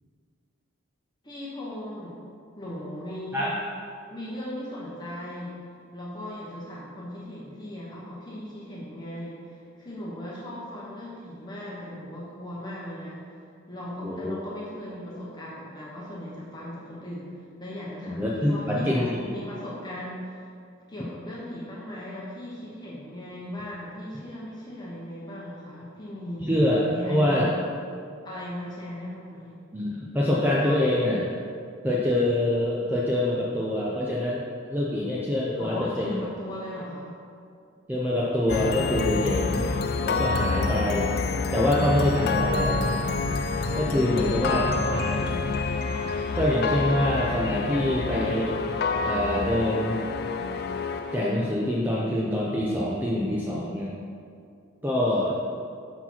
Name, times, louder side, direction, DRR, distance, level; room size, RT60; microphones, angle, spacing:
voice 1, 1.2-2.2 2.6-3.6 4.1-5.6 5.9-13.3 13.7-20.5 20.9-26.5 26.8-27.5 28.2-29.5 35.6-37.2 44.0-45.6, left 1 dB, 20° left, -6 dB, 1.0 m, -38 dB
voice 2, 14.0-14.4 18.0-19.2 26.4-27.5 29.7-31.3 31.8-34.4 34.7-36.3 37.9-39.7 40.0-41.1 41.5-43.0 43.8-45.1 46.4-50.0 51.1-53.9 54.8-55.3, left 1 dB, 10° right, -5 dB, 0.5 m, -25 dB
sound 1, 38.5-51.8, left 3 dB, 50° left, 0.3 m, -27 dB
5.8 x 4.8 x 5.6 m, 2.3 s
head